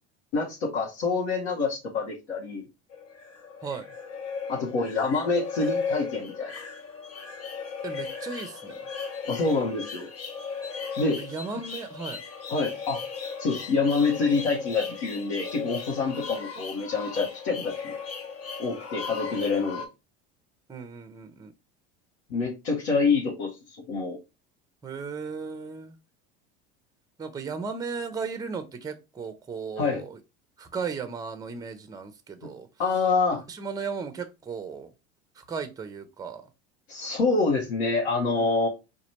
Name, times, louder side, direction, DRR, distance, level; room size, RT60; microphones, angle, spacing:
voice 1, 0.3-2.6 4.5-6.6 9.2-10.1 11.0-11.2 12.5-13.0 13.4-17.9 18.6-19.9 22.3-24.2 29.8-30.0 32.4-32.5 32.8-33.4 36.9-38.7, left 4 dB, 80° left, 1.2 m, -26 dB
sound 1, 2.9-19.9, left 5 dB, 50° left, 1.1 m, -36 dB
voice 2, 7.8-8.8 11.2-12.2 16.0-16.2 20.7-21.5 24.8-26.0 27.2-30.2 30.6-32.7 33.5-34.9 35.4-36.5 38.3-38.5, right 5 dB, 10° right, 0.6 m, -36 dB
4.0 x 2.6 x 3.0 m
hypercardioid pair, 100°, 32 cm